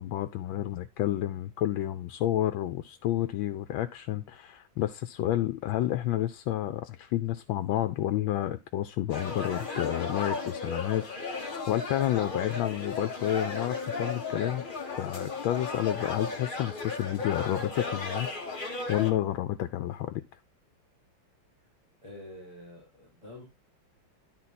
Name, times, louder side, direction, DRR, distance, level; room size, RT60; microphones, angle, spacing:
voice 1, 0.0-14.6 15.0-20.2, left 13 dB, 85° left, 1.4 m, -30 dB
sound 1, 9.1-19.1, left 4 dB, 30° left, 1.3 m, -35 dB
voice 2, 22.0-23.4, left 1 dB, 15° left, 4.1 m, -47 dB
11.0 x 4.1 x 4.1 m
omnidirectional pair, 2.1 m